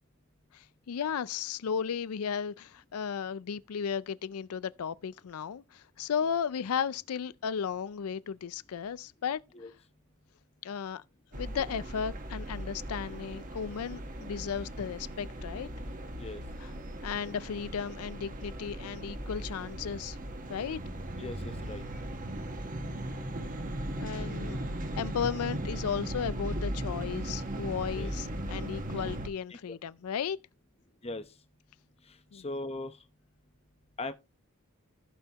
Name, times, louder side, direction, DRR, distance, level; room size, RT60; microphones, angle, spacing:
voice 1, 0.5-9.7 10.6-11.0 11.3-15.7 16.6-16.7 17.0-20.2 20.5-20.8 24.0-24.6 25.0-30.4 32.3-32.4, left 7 dB, 90° left, 0.4 m, -35 dB
sound 1, 11.3-29.3, right 1 dB, 40° right, 1.4 m, -38 dB
voice 2, 21.2-21.8 28.0-28.1 29.5-29.8 31.0-31.2 32.1-33.0 34.0-34.1, left 2 dB, 30° left, 0.9 m, -39 dB
15.5 x 5.5 x 3.0 m
head